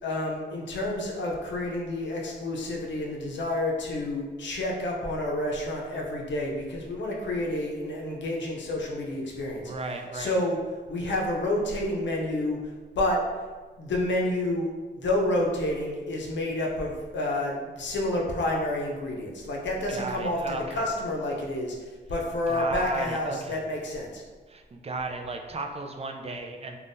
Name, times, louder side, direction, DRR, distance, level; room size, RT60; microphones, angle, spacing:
voice 1, 0.0-9.6 10.1-10.6 10.9-13.2 13.8-24.2, left 1 dB, 80° left, -1 dB, 0.6 m, -29 dB
voice 2, 9.6-10.3 19.9-20.8 22.5-23.6 24.5-26.8, right 2 dB, 35° right, 4 dB, 0.4 m, -35 dB
3.4 x 2.2 x 2.6 m, 1.4 s
cardioid pair, 65°, 19 cm